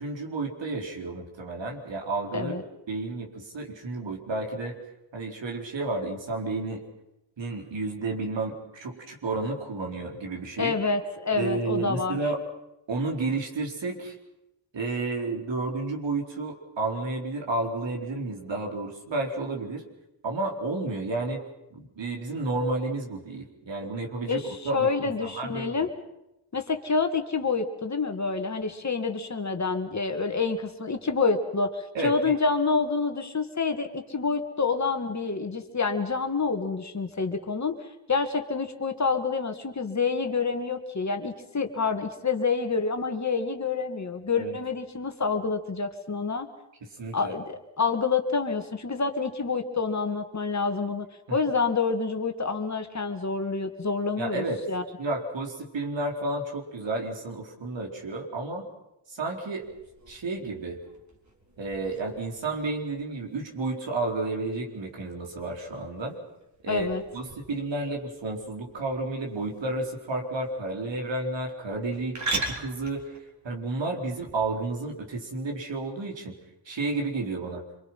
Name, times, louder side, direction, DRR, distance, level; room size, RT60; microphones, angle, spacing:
voice 1, 0.0-2.6 2.9-4.8 5.1-6.8 7.4-10.7 11.3-12.4 12.9-14.1 14.7-19.8 20.2-21.4 21.7-25.8 31.9-32.4 44.4-44.6 47.0-47.4 54.2-54.6 55.0-58.7 59.1-59.7 60.1-60.8 61.6-66.1 66.6-73.2 73.4-76.4 76.7-77.6, right 2 dB, 70° right, 1 dB, 4.6 m, -31 dB
voice 2, 10.6-12.2 24.3-24.4 24.7-25.9 26.5-46.5 47.1-54.8 66.7-67.0, left 4 dB, 35° left, 6 dB, 2.3 m, -28 dB
sound 1, 59.6-74.7, right 2 dB, 35° right, 4.3 m, -41 dB
26.5 x 23.5 x 5.8 m, 0.90 s
cardioid pair, 85°, 46 cm